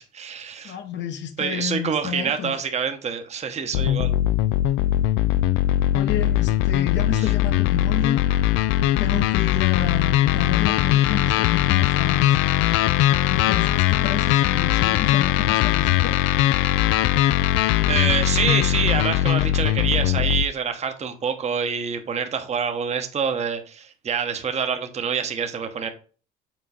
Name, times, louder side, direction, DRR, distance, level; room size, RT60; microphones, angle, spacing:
voice 1, 0.0-0.8 1.4-4.2 7.2-7.3 17.9-25.9, right 6 dB, 30° right, 1.0 m, -26 dB
voice 2, 0.6-2.5 5.9-8.2 9.0-12.4 13.3-16.2, left 9 dB, 55° left, 1.0 m, -30 dB
sound 1, 3.7-20.5, left 13 dB, 75° left, 0.4 m, -20 dB
6.2 x 4.4 x 4.3 m
supercardioid pair, 100°, 21 cm